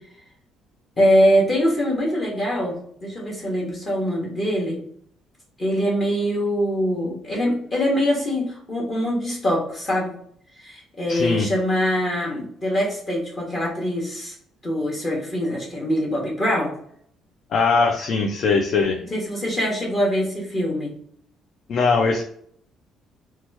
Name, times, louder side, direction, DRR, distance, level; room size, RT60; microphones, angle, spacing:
voice 1, 1.0-4.8 5.6-10.1 10.6-14.3 14.6-16.7 19.1-20.9, equal, 25° left, -4 dB, 0.9 m, -23 dB
voice 2, 11.1-11.5 17.5-19.0 21.7-22.2, left 4 dB, 50° left, 3 dB, 0.4 m, -20 dB
2.9 x 2.2 x 3.2 m, 0.64 s
cardioid pair, 145°, 0 cm